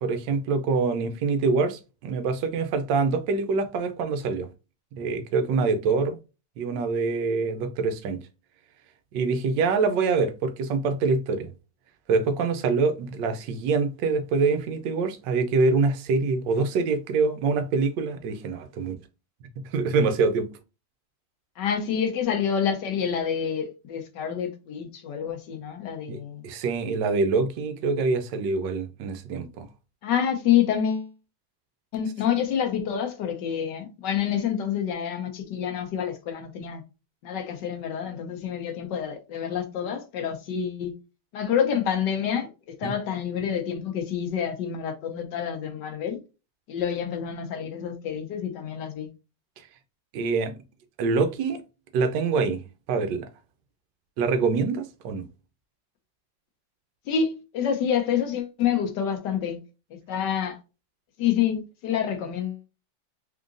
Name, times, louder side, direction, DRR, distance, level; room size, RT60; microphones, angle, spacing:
voice 1, 0.0-4.5 5.0-6.2 6.6-8.2 9.1-11.5 12.1-19.0 19.7-20.5 26.1-29.7 42.8-42.9 50.1-50.5 51.0-51.6 51.9-52.6 52.9-53.3 54.2-55.3, right 4 dB, 75° right, 1.3 m, -25 dB
voice 2, 21.6-26.4 30.0-31.1 31.9-36.8 37.2-40.9 41.3-46.2 46.7-49.1 57.1-59.6 59.9-60.6 61.2-62.6, left 8 dB, 70° left, 1.3 m, -27 dB
3.8 x 3.6 x 2.5 m
omnidirectional pair, 2.1 m